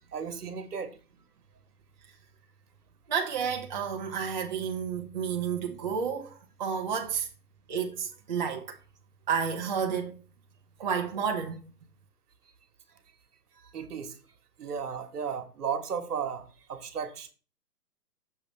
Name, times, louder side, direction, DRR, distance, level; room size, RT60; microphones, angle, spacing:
voice 1, 0.1-1.0 13.5-14.2 14.6-17.3, right 7 dB, 65° right, 1.3 m, -35 dB
voice 2, 3.1-6.3 6.6-7.3 7.7-8.6 9.3-10.1 10.8-11.6, right 7 dB, 30° right, 0.6 m, -30 dB
6.5 x 5.6 x 3.2 m
hypercardioid pair, 140°, 49 cm